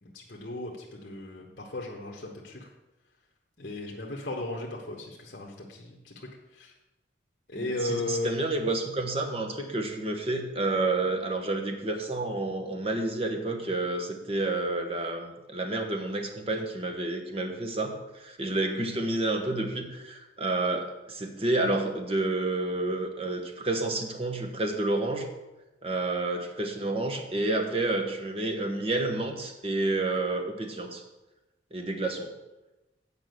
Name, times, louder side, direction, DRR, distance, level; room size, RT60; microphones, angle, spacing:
voice 1, 0.0-2.7 3.6-6.7 7.5-8.4, left 2 dB, 50° left, -2 dB, 1.2 m, -36 dB
voice 2, 7.6-25.3 25.8-31.0 31.7-32.3, right 2 dB, 30° right, 4 dB, 1.1 m, -30 dB
8.8 x 5.2 x 7.8 m, 1.0 s
head